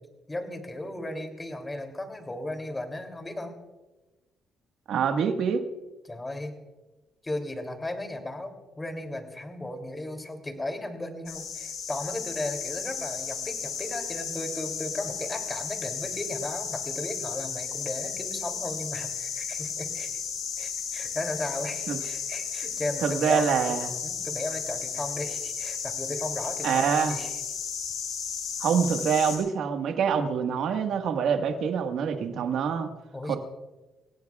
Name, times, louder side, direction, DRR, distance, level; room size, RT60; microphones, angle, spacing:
voice 1, 0.3-3.5 6.0-6.6 7.2-20.1 20.6-23.7 24.0-27.3 33.1-33.4, left 1 dB, 20° left, 5 dB, 3.0 m, -35 dB
voice 2, 4.9-5.6 21.9-22.0 23.0-23.9 26.6-27.2 28.6-32.9 33.3-33.4, right 7 dB, 75° right, 5 dB, 1.5 m, -25 dB
sound 1, 11.3-29.4, left 7 dB, 85° left, 4.4 m, -34 dB
27.5 x 16.5 x 2.4 m, 1.1 s
cardioid pair, 90°, 0 cm